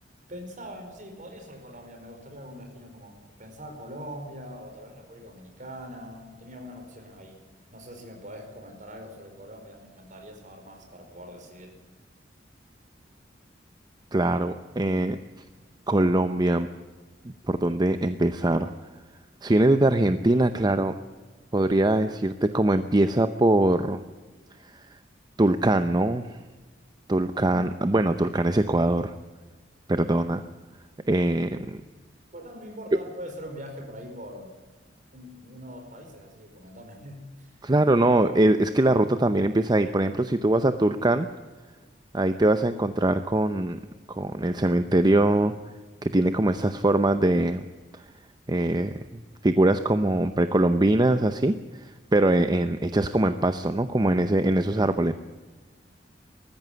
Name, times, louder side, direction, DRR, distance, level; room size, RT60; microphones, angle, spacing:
voice 1, 0.3-3.1 3.4-7.4 7.7-11.8 32.3-34.6 35.1-37.7, equal, 45° right, 4 dB, 4.8 m, -42 dB
voice 2, 14.1-15.2 15.9-16.7 17.2-18.7 19.4-20.9 21.5-24.0 25.4-26.3 27.1-29.1 29.9-30.4 31.1-31.8 37.6-41.3 42.1-43.8 44.1-45.5 46.0-47.7 47.9-48.0 48.5-49.0 49.4-55.1, right 1 dB, 25° right, 10 dB, 0.7 m, -22 dB
19.5 x 14.5 x 9.5 m, 1.3 s
head